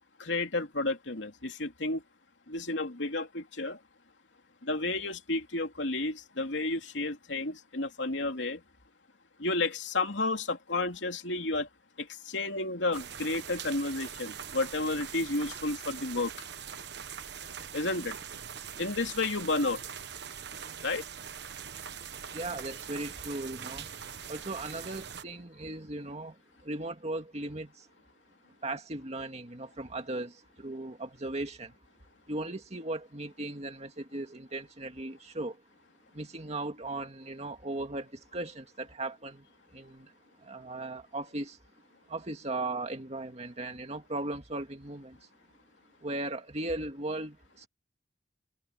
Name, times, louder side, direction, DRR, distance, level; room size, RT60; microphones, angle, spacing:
voice 1, 0.2-2.0 2.5-3.8 4.6-8.6 9.4-11.7 12.0-16.3 17.7-18.2 18.8-19.8 20.8-21.1, left 2 dB, 85° left, 2.8 m, -31 dB
sound 1, 12.9-25.2, right 8 dB, 65° right, 1.2 m, -42 dB
voice 2, 22.3-24.0 24.3-27.9 28.6-31.7 32.3-35.6 36.1-40.1 40.4-41.6 42.1-45.3 46.0-47.7, right 2 dB, 35° right, 2.1 m, -37 dB
head